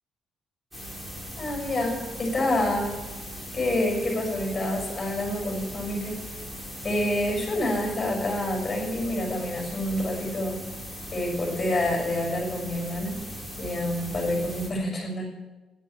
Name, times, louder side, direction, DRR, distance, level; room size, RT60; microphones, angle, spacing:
sound 1, 0.7-14.7, equal, 5° right, 4.1 m, -39 dB
voice 1, 1.4-3.0 3.5-6.2 6.8-10.6 11.1-13.2 13.6-15.3, left 1 dB, 30° left, 0 dB, 5.8 m, -27 dB
10.0 x 9.9 x 8.0 m, 1.2 s
cardioid pair, 90°, 0 cm